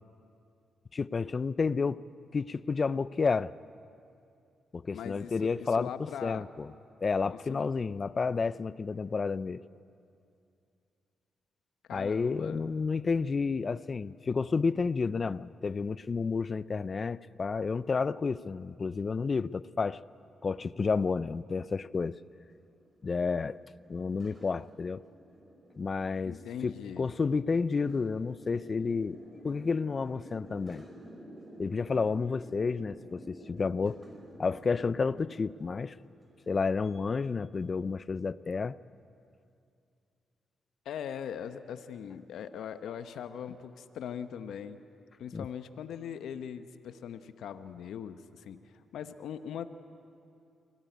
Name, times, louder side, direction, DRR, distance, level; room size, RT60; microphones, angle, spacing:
voice 1, 0.9-2.0 2.3-3.5 4.7-5.9 6.2-6.7 7.0-9.6 11.9-20.0 20.4-22.2 23.0-23.6 23.9-25.0 25.8-26.4 26.6-29.2 29.4-30.8 31.6-34.0 34.4-35.9 36.5-38.8 45.3-45.5, left 4 dB, 45° left, 0.5 m, -30 dB
voice 2, 4.9-6.4 7.3-7.7 11.9-12.6 26.2-27.1 40.8-44.8 45.2-49.7, left 8 dB, 80° left, 0.9 m, -40 dB
sound 1, 20.7-37.0, right 1 dB, 25° right, 5.0 m, -51 dB
24.5 x 17.5 x 9.2 m
supercardioid pair, 60°, 0 cm